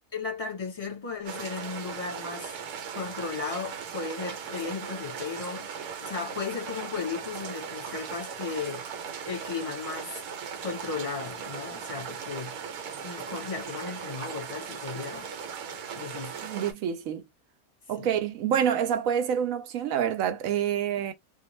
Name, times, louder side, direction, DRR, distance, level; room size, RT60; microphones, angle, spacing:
voice 1, 0.1-2.5 2.9-5.7 6.0-8.8 9.2-10.1 10.6-12.6 13.0-15.3 16.0-16.4 18.0-18.1, left 5 dB, 30° left, 0.8 m, -35 dB
sound 1, 1.2-16.7, right 7 dB, 90° right, 1.2 m, -38 dB
voice 2, 16.4-17.2 17.9-21.1, right 9 dB, 70° right, 0.9 m, -27 dB
2.5 x 2.3 x 3.1 m
omnidirectional pair, 1.6 m